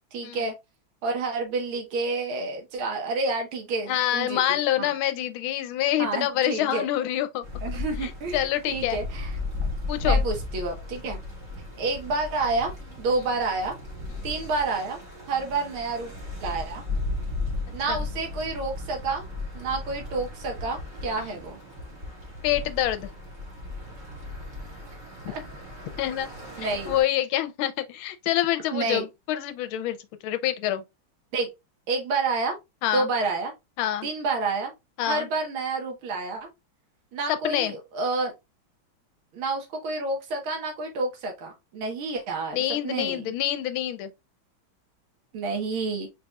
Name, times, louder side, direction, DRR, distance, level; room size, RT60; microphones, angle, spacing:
voice 1, 0.1-0.5 1.0-4.9 6.0-6.9 7.6-9.3 10.0-11.2 11.8-12.7 13.0-13.8 14.2-15.0 15.3-16.1 16.4-16.8 17.7-19.2 19.5-21.6 25.3-25.4 26.6-26.9 28.7-29.1 31.3-31.5 31.9-32.6 32.9-33.5 34.0-34.7 35.1-36.5 37.1-38.3 39.3-43.3 45.3-46.1, right 3 dB, 75° right, 2.0 m, -29 dB
voice 2, 3.9-7.4 8.0-9.0 9.9-10.2 17.9-18.0 21.2-21.3 22.4-23.1 26.0-26.3 26.6-30.0 30.2-30.8 32.8-33.1 33.8-34.1 35.0-35.3 37.3-37.7 42.5-44.1, left 12 dB, 80° left, 1.4 m, -26 dB
sound 1, 7.4-27.0, left 3 dB, 35° right, 1.7 m, -35 dB
4.4 x 4.1 x 2.3 m
omnidirectional pair, 2.3 m